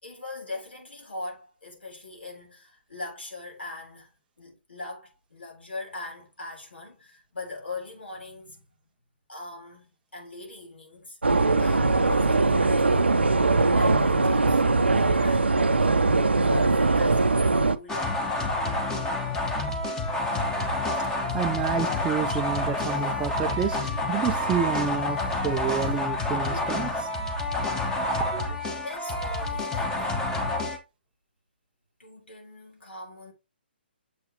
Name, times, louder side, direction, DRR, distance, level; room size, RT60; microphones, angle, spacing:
voice 1, 0.0-4.1 4.4-8.7 9.3-11.2 11.6-13.2 13.6-14.6 15.0-15.5 15.8-18.2 28.8-30.8 32.0-33.3, left 2 dB, 80° left, 3.5 m, -41 dB
sound 1, 11.2-17.8, right 3 dB, 85° right, 0.6 m, -21 dB
sound 2, 17.9-30.8, left 2 dB, 10° left, 1.3 m, -28 dB
voice 2, 20.9-27.1 28.3-28.6, right 8 dB, 15° right, 0.4 m, -30 dB
7.4 x 4.6 x 3.0 m
figure-of-eight pair, 135°, 6 cm